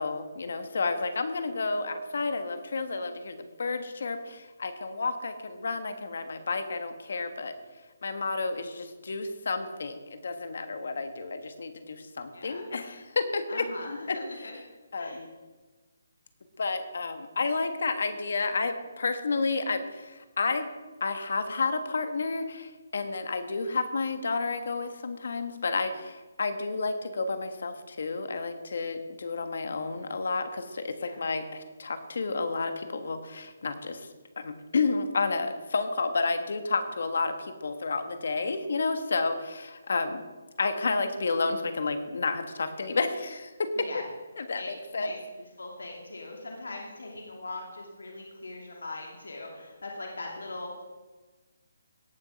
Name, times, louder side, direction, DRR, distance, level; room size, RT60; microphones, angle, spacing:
voice 1, 0.0-7.5 8.0-13.6 14.1-14.2 14.9-15.3 16.6-20.7 21.0-34.1 34.4-40.2 40.6-43.5 43.8-43.9 44.4-45.1, left 4 dB, 65° left, 8 dB, 1.4 m, -31 dB
voice 2, 12.3-12.7 13.5-14.5 14.9-15.2 31.0-31.2 43.8-44.0 44.5-45.2 45.6-50.8, left 2 dB, 85° left, 0 dB, 2.5 m, -41 dB
17.5 x 6.6 x 5.2 m, 1.3 s
hypercardioid pair, 160°, 0 cm